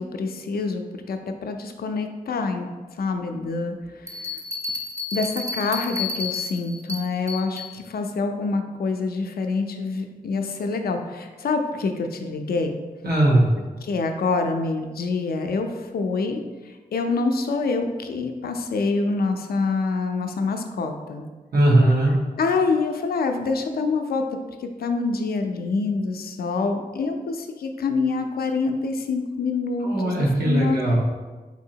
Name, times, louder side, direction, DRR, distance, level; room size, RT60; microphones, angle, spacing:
voice 1, 0.0-2.7 3.0-4.4 5.1-12.7 13.8-21.3 22.4-30.8, left 4 dB, 80° left, 5 dB, 0.4 m, -26 dB
sound 1, 4.1-7.7, left 3 dB, 15° right, 0.5 m, -31 dB
voice 2, 13.0-13.5 21.5-22.1 29.8-31.0, right 1 dB, 85° right, -3 dB, 0.9 m, -19 dB
4.2 x 2.7 x 2.7 m, 1.3 s
wide cardioid pair, 95°, 16 cm